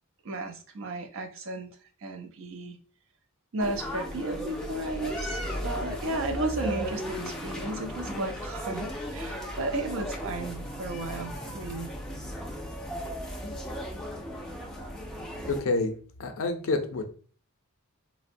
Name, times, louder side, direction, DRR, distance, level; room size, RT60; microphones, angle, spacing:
voice 1, 0.2-1.7 2.0-2.8 3.5-12.0, right 2 dB, 60° right, 5 dB, 0.4 m, -34 dB
sound 1, 3.6-15.6, equal, 5° left, 0.3 m, -36 dB
voice 2, 15.5-15.9 16.2-17.1, left 3 dB, 65° left, 6 dB, 0.5 m, -28 dB
3.5 x 2.0 x 2.5 m, 0.41 s
head